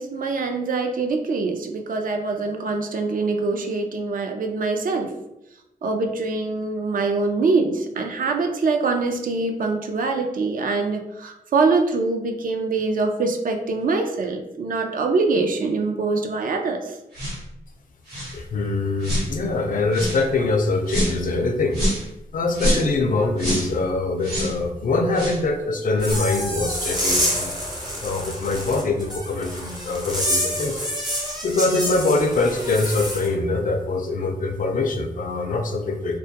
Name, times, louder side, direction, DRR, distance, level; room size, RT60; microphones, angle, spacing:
voice 1, 0.0-5.1 5.8-17.0, right 3 dB, 60° right, 4 dB, 0.4 m, -24 dB
sound 1, 17.1-17.4 18.1-18.4 19.0-19.3 19.9-20.2 20.9-21.2 21.7-22.1 22.5-22.9 23.4-23.7 24.2-24.6 25.1-25.4 26.0-26.2, equal, 85° right, 1.1 m, -25 dB
voice 2, 18.3-21.8 22.3-27.5 28.0-30.8 31.4-36.2, left 3 dB, 60° left, 5 dB, 0.4 m, -23 dB
sound 2, 26.0-33.3, equal, 25° right, 0.7 m, -27 dB
2.2 x 2.2 x 2.7 m, 0.88 s
wide cardioid pair, 95°, 16 cm